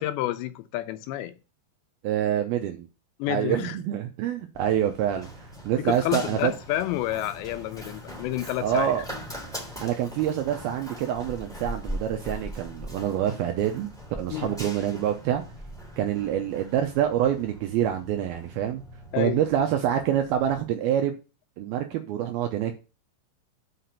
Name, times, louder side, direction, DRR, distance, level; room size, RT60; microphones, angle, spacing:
voice 1, 0.0-1.3 3.2-3.8 5.8-9.0 14.3-14.6 19.1-19.4, left 14 dB, 80° left, 2.8 m, -29 dB
voice 2, 2.0-2.9 3.3-6.5 8.6-9.0 9.8-13.9 14.2-15.4 16.0-18.8 19.2-21.2 21.6-22.7, right 10 dB, 80° right, 2.3 m, -26 dB
Run, 4.5-20.6, equal, ahead, 2.1 m, -41 dB
5.9 x 5.7 x 6.7 m
omnidirectional pair, 5.1 m